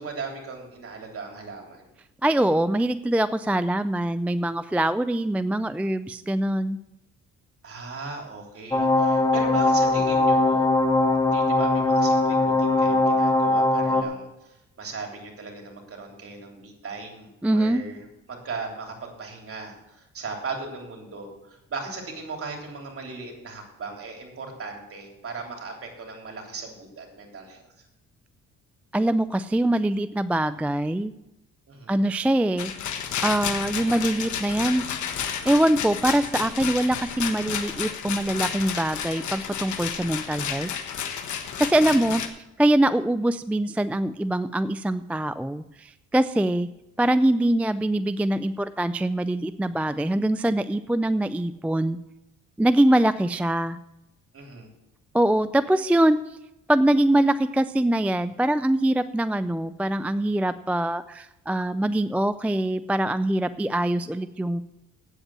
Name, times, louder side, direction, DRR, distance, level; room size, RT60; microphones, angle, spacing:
voice 1, 0.0-1.8 7.6-10.7 11.3-18.0 18.3-27.6 31.7-32.0 54.3-54.7, right 4 dB, 50° right, 1 dB, 3.4 m, -37 dB
voice 2, 2.2-6.8 17.4-17.8 28.9-31.1 31.9-32.7 33.2-34.8 35.5-40.7 41.6-42.2 42.6-46.7 47.0-52.0 52.6-53.8 55.1-56.4 56.7-64.6, right 1 dB, 5° right, 12 dB, 0.3 m, -23 dB
sound 1, 8.7-14.0, left 2 dB, 10° left, 1.3 m, -21 dB
Rattle, 32.6-42.3, left 8 dB, 75° left, 1.3 m, -31 dB
8.9 x 8.1 x 7.4 m, 0.90 s
cardioid pair, 90°, 30 cm